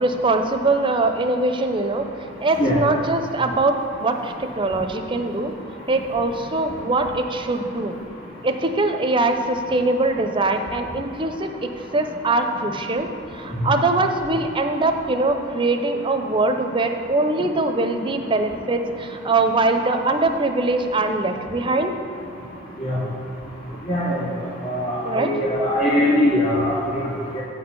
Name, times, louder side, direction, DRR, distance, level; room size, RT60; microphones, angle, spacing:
voice 1, 0.0-2.1 2.4-5.5 5.9-8.0 8.4-11.5 11.9-13.1 13.3-21.9 25.0-25.3, right 2 dB, 25° right, 6 dB, 0.5 m, -22 dB
voice 2, 23.9-24.3 24.6-27.0 27.3-27.4, left 1 dB, 35° left, -11 dB, 2.1 m, -21 dB
8.9 x 4.4 x 6.8 m, 2.9 s
head